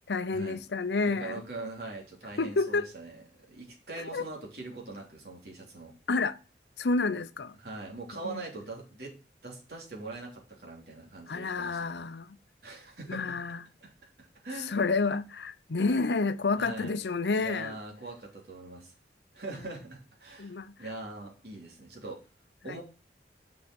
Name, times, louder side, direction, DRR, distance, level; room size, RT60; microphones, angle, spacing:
voice 1, 0.1-1.4 2.4-2.9 4.0-4.2 6.1-6.4 6.8-7.5 8.2-8.4 11.3-12.4 13.1-13.6 14.6-17.8 19.5-19.7 20.4-20.9 22.7-22.8, left 3 dB, 75° left, 0.7 m, -30 dB
voice 2, 1.1-5.9 7.6-9.1 9.4-11.8 12.6-13.2 13.8-13.9 14.4-14.8 16.6-17.0 17.3-18.9 19.3-22.2 22.6-22.8, right 2 dB, 65° right, 3.2 m, -42 dB
7.1 x 6.4 x 6.2 m
head